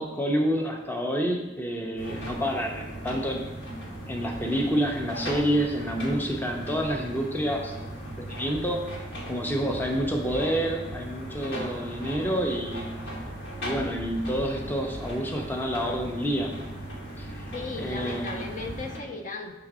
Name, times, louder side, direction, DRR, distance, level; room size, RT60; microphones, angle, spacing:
voice 1, 0.0-3.5 4.1-8.8 9.3-12.9 13.6-16.5 17.2-18.3, equal, 10° left, 1 dB, 0.6 m, -28 dB
sound 1, 2.0-19.0, right 1 dB, 85° left, 1.7 m, -37 dB
voice 2, 17.5-19.5, left 3 dB, 45° left, 3 dB, 0.7 m, -36 dB
5.9 x 3.8 x 6.0 m, 1.1 s
head